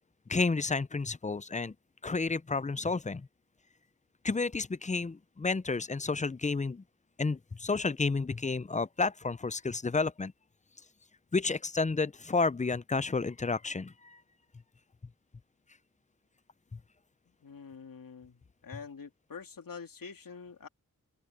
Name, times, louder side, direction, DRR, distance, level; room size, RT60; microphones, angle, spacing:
voice 1, 0.3-1.7 2.0-3.3 4.2-6.8 7.2-10.3 11.3-14.2 16.7-16.8, left 4 dB, 20° left, 0.6 m, -31 dB
voice 2, 17.4-20.7, left 5 dB, 80° left, 2.9 m, -46 dB
open air
cardioid pair, 45°, 33 cm